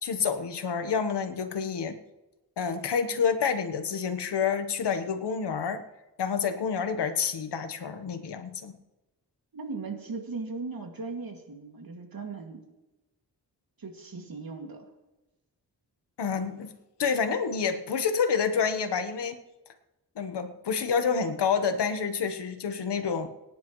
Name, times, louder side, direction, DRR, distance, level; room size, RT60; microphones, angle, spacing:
voice 1, 0.0-2.0 2.6-5.8 6.2-8.7 16.2-16.7 17.0-19.4 20.2-23.3, left 6 dB, 85° left, 8 dB, 1.3 m, -28 dB
voice 2, 9.5-12.6 13.8-14.9, right 4 dB, 60° right, 3 dB, 2.3 m, -38 dB
23.0 x 10.5 x 3.2 m, 1.0 s
wide cardioid pair, 85°, 40 cm